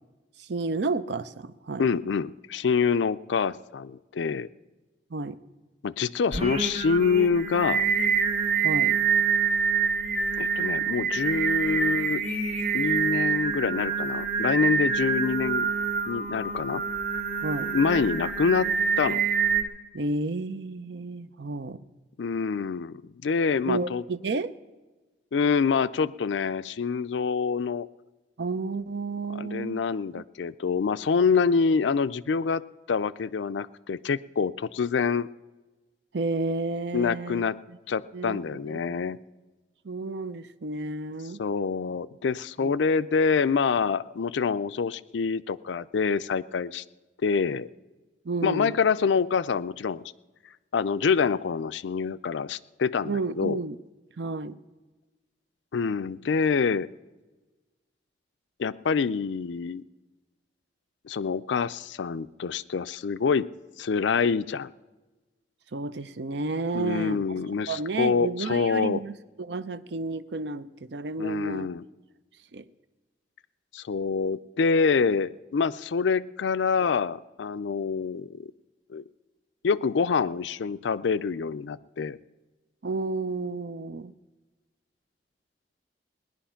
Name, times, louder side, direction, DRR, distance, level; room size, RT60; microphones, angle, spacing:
voice 1, 0.4-1.9 5.1-5.4 8.6-9.0 17.4-17.7 19.9-21.8 23.7-24.6 28.4-29.8 30.2-30.3 36.1-37.8 38.1-39.0 39.8-41.4 42.6-42.7 48.2-48.8 53.0-53.8 54.2-54.6 65.7-67.3 67.7-71.7 72.5-72.7 82.8-84.1, right 3 dB, 70° right, 14 dB, 0.6 m, -31 dB
voice 2, 1.8-4.5 5.8-7.9 10.4-12.2 12.7-15.7 16.1-16.8 17.7-19.2 22.2-24.0 25.3-27.9 29.4-32.6 32.9-35.3 36.9-37.6 37.9-39.2 41.4-46.8 47.2-47.7 48.4-50.0 50.7-53.6 55.7-56.9 58.6-59.8 61.1-63.5 63.8-64.7 66.7-69.0 71.2-71.8 73.7-78.5 78.9-79.0 79.6-82.2, left 5 dB, 85° left, 15 dB, 0.4 m, -26 dB
Singing, 6.3-19.6, right 6 dB, 35° right, 1.6 m, -26 dB
19.0 x 10.5 x 5.7 m, 1.2 s
head